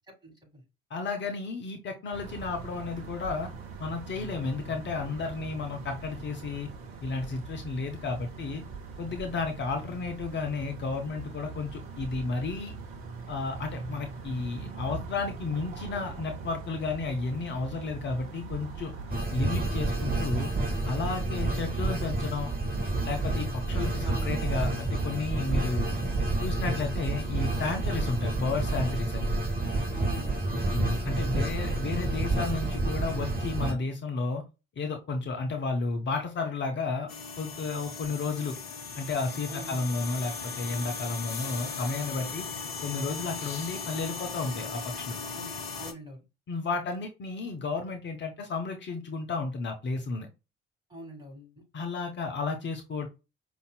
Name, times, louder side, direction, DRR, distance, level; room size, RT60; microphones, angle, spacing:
voice 1, 0.1-0.6 24.0-24.4 29.9-30.4 39.5-39.8 45.3-45.5 45.8-46.2 50.9-51.6, equal, 15° right, 0 dB, 2.0 m, -44 dB
voice 2, 0.9-3.5 3.8-6.7 7.0-8.6 9.0-12.7 13.3-18.9 19.3-20.5 20.8-22.5 23.0-25.9 26.4-29.3 30.7-34.4 34.8-37.1 37.4-38.6 39.0-42.5 42.8-45.2 46.5-50.3 51.7-53.1, left 3 dB, 40° left, 4 dB, 0.6 m, -32 dB
sound 1, 2.1-19.2, right 4 dB, 60° right, 0.7 m, -42 dB
sound 2, 19.1-33.7, right 2 dB, 30° right, 1.0 m, -29 dB
sound 3, 37.1-45.9, left 5 dB, 80° left, 0.5 m, -38 dB
5.2 x 2.4 x 2.3 m, 0.28 s
figure-of-eight pair, 50°, 30 cm